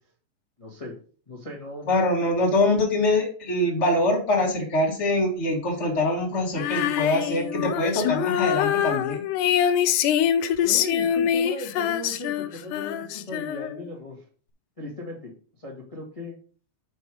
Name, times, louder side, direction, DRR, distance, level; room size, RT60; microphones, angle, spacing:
voice 1, 0.6-0.9 1.3-1.9 10.6-14.2 14.8-15.3 15.6-16.3, left 2 dB, 60° left, -1 dB, 0.3 m, -37 dB
voice 2, 1.9-9.2, left 1 dB, 40° left, -3 dB, 1.0 m, -24 dB
Female singing, 6.6-13.9, left 10 dB, 80° left, 1.8 m, -24 dB
8.0 x 4.7 x 4.9 m, 0.42 s
omnidirectional pair, 4.2 m